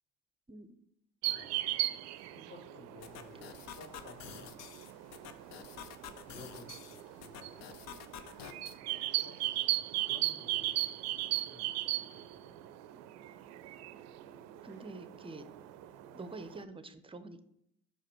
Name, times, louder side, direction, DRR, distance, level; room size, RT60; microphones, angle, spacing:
sound 1, 1.2-16.6, right 15 dB, 55° right, 0.5 m, -38 dB
voice 1, 2.3-4.5 6.2-7.7 8.7-12.6 14.7-14.9, left 2 dB, 35° left, 0 dB, 2.4 m, -55 dB
sound 2, 3.0-8.8, left 8 dB, 55° left, 0.7 m, -50 dB
voice 2, 14.6-15.5 16.1-17.4, right 2 dB, 15° right, 11 dB, 0.7 m, -46 dB
5.6 x 5.0 x 4.4 m, 0.75 s
hypercardioid pair, 60°, 31 cm